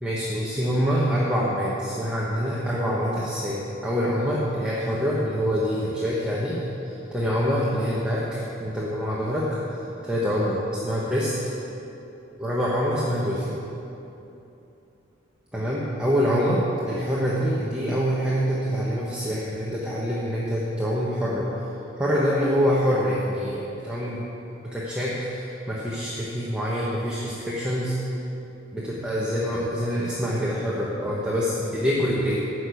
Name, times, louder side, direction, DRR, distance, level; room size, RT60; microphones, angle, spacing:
voice 1, 0.0-9.5 10.0-11.3 12.4-13.6 15.5-21.5 22.0-24.2 24.7-27.9 28.7-32.4, equal, 5° right, -7 dB, 1.2 m, -25 dB
13.5 x 6.1 x 8.3 m, 2.9 s
head